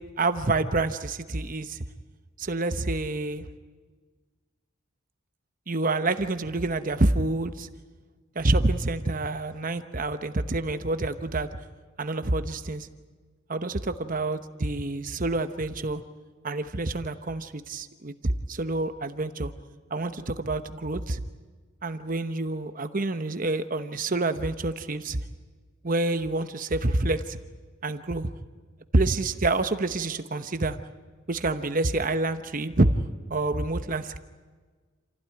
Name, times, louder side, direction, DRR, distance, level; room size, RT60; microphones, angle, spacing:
voice 1, 0.0-1.8 2.4-3.5 5.7-7.7 8.3-11.5 12.0-12.9 13.5-16.0 16.4-19.5 19.9-21.2 21.8-25.2 25.8-27.4 27.8-28.3 28.9-30.8 31.3-32.9 33.3-34.2, right 2 dB, 40° right, 9 dB, 1.0 m, -27 dB
28.0 x 15.5 x 9.7 m, 1.4 s
head